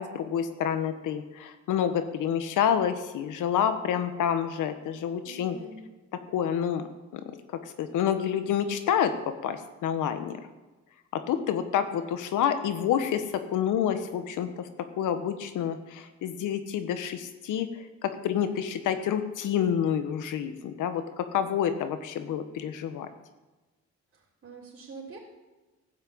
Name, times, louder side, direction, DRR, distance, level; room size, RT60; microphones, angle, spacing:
voice 1, 0.0-5.6 6.3-6.8 7.1-7.2 7.8-10.4 11.1-13.2 13.5-14.7 15.0-17.7 18.0-23.1, left 9 dB, 85° left, 9 dB, 1.4 m, -28 dB
voice 2, 5.2-5.9 18.4-18.7 24.1-25.2, right 3 dB, 40° right, -6 dB, 3.9 m, -45 dB
15.0 x 6.1 x 8.6 m, 1.2 s
cardioid pair, 90°, 30 cm